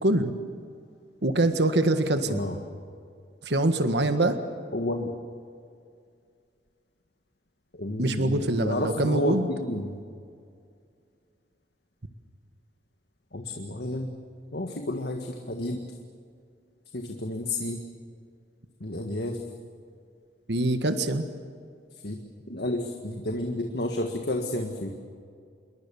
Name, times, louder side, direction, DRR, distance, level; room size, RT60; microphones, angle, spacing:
voice 1, 0.0-0.3 1.2-2.4 3.4-4.4 8.0-9.5 20.5-21.2, right 2 dB, 70° right, 8 dB, 1.6 m, -24 dB
voice 2, 4.7-5.1 7.7-9.9 13.3-14.1 14.5-15.8 16.9-17.8 18.8-19.4 22.0-22.1 22.5-24.9, left 1 dB, 65° left, 4 dB, 1.8 m, -31 dB
28.0 x 22.5 x 7.1 m, 2.3 s
head